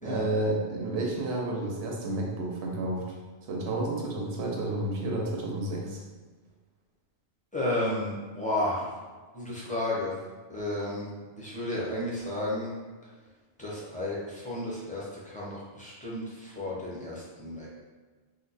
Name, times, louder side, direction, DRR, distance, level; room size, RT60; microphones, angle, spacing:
voice 1, 0.0-3.1 3.5-6.0, right 2 dB, 70° right, -1 dB, 0.9 m, -31 dB
voice 2, 7.5-9.0 9.3-10.2 10.5-11.1 11.4-12.7 13.6-17.7, left 1 dB, 10° left, -7 dB, 0.4 m, -32 dB
2.7 x 2.1 x 3.9 m, 1.4 s
omnidirectional pair, 1.2 m